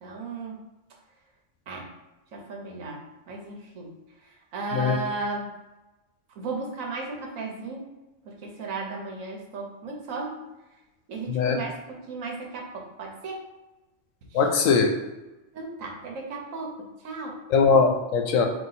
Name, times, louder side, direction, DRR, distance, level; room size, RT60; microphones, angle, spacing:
voice 1, 0.0-0.6 1.7-1.9 2.3-3.9 4.5-5.5 6.4-7.9 8.2-10.4 11.1-13.4 14.3-14.4 15.5-17.4, right 3 dB, 90° right, 0 dB, 1.2 m, -35 dB
voice 2, 14.3-14.9 17.5-18.5, left 5 dB, 85° left, 3 dB, 1.0 m, -20 dB
3.9 x 2.6 x 4.0 m, 1.0 s
omnidirectional pair, 1.3 m